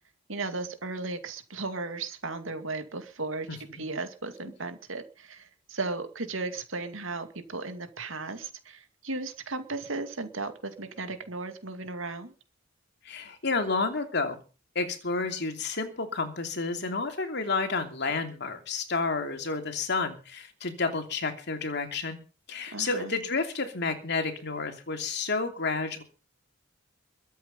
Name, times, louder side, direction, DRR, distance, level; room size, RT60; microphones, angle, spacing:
voice 1, 0.3-3.5 3.7-12.3 22.7-23.1, right 3 dB, 75° right, 8 dB, 2.4 m, -35 dB
voice 2, 3.5-3.8 13.0-14.4 14.7-22.2 22.5-26.0, left 4 dB, 60° left, 6 dB, 2.9 m, -30 dB
22.5 x 8.2 x 5.5 m, 0.35 s
head